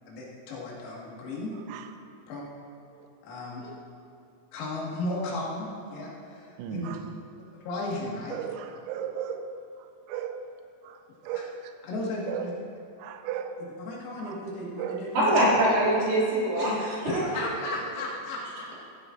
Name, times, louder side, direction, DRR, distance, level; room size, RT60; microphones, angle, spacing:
voice 1, 0.1-1.5 2.3-2.4 3.2-3.7 4.5-7.0 7.5-8.4 11.3-11.4 11.9-12.5 13.8-15.4 16.6-16.7 17.0-18.8, left 2 dB, 85° left, -4 dB, 4.7 m, -35 dB
voice 2, 1.5-1.9 2.9-3.1 3.6-3.8 6.6-7.2 8.3-10.4 10.8-11.8 12.3-12.5 13.0-13.6 14.2-14.4 14.8-15.0, right 8 dB, 90° right, 7 dB, 3.4 m, -36 dB
voice 3, 15.1-17.4, right 1 dB, 65° right, -7 dB, 4.9 m, -24 dB
15.5 x 12.5 x 2.6 m, 2.4 s
omnidirectional pair, 6.0 m